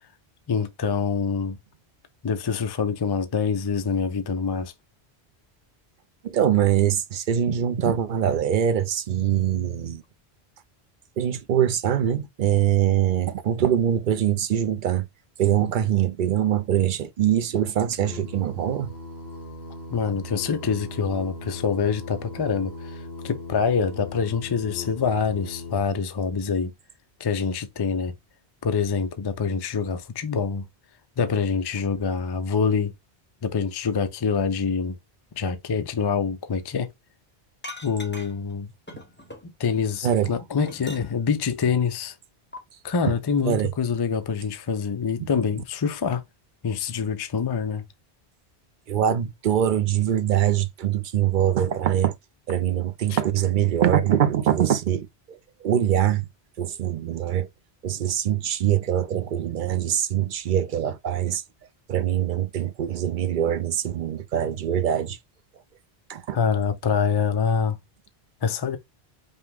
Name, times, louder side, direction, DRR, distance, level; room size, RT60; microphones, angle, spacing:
voice 1, 0.5-1.6 2.2-4.7 19.9-26.7 27.2-28.1 28.6-30.7 31.2-32.9 33.4-34.9 35.4-36.9 37.8-38.7 39.4-42.2 42.8-46.2 46.6-47.8 53.1-53.2 66.3-67.8 68.4-68.8, left 6 dB, 35° left, 0.4 m, -25 dB
voice 2, 6.2-10.0 11.2-15.1 15.4-18.9 40.0-40.3 43.5-43.7 48.9-52.1 52.5-55.4 55.6-56.2 56.6-57.5 57.8-61.4 61.9-65.2 66.1-66.4, right 10 dB, 55° right, 0.7 m, -23 dB
Singing, 17.9-25.8, left 2 dB, 65° left, 1.6 m, -38 dB
sound 1, 37.6-38.5 38.9-39.8 40.2-41.4 42.5-42.6, left 1 dB, 10° left, 0.8 m, -41 dB
5.4 x 2.2 x 3.5 m
omnidirectional pair, 1.1 m